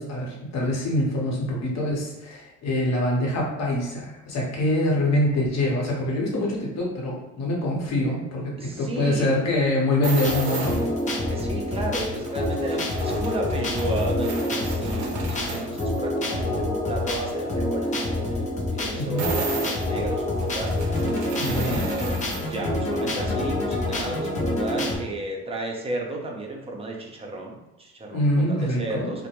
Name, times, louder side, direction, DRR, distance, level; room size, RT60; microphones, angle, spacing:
voice 1, 0.0-10.8 18.9-19.2 21.4-21.9 28.1-29.1, left 1 dB, 55° left, -2 dB, 1.0 m, -25 dB
voice 2, 8.6-9.4 11.3-22.2 22.5-29.3, right 2 dB, 20° right, 0 dB, 0.6 m, -33 dB
sound 1, 10.0-11.1 11.7-16.0 19.2-22.6 22.9-23.0, right 4 dB, 90° right, 0.5 m, -35 dB
sound 2, 10.2-25.0, left 1 dB, 25° left, 0.6 m, -27 dB
2.2 x 2.1 x 2.9 m, 0.99 s
supercardioid pair, 80°, 32 cm